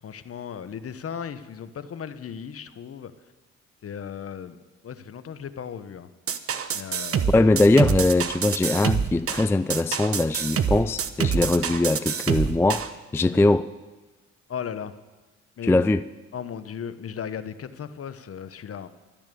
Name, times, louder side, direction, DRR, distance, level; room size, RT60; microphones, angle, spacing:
voice 1, 0.0-3.1 3.8-4.6 4.8-6.1 6.7-7.5 13.3-13.5 14.5-14.9 15.6-15.8 16.3-18.9, left 7 dB, 45° left, 1.0 m, -36 dB
sound 1, 6.3-12.9, right 7 dB, 45° right, 1.0 m, -26 dB
voice 2, 7.3-13.7 15.6-16.0, left 2 dB, 10° left, 0.3 m, -21 dB
12.5 x 10.5 x 6.9 m
supercardioid pair, 60°, 32 cm